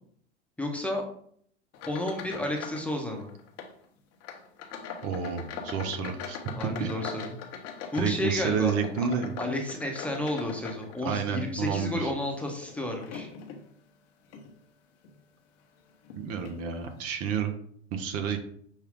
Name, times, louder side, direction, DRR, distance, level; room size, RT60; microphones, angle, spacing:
voice 1, 0.6-1.0 1.9-3.3 6.5-7.4 7.9-8.7 9.4-13.3, left 1 dB, 5° left, 0 dB, 0.9 m, -31 dB
sound 1, 1.7-2.9 3.2-3.7 4.2-11.3 11.8-13.6 14.2-14.5 15.0-15.2 16.0-16.2 16.5-16.6, left 6 dB, 45° left, 0.9 m, -41 dB
voice 2, 5.0-6.4 6.8-6.9 8.0-9.3 11.0-12.1 16.1-17.5 17.9-18.4, right 6 dB, 45° right, 6 dB, 0.7 m, -30 dB
6.4 x 2.3 x 3.6 m, 0.63 s
hypercardioid pair, 100°, 35 cm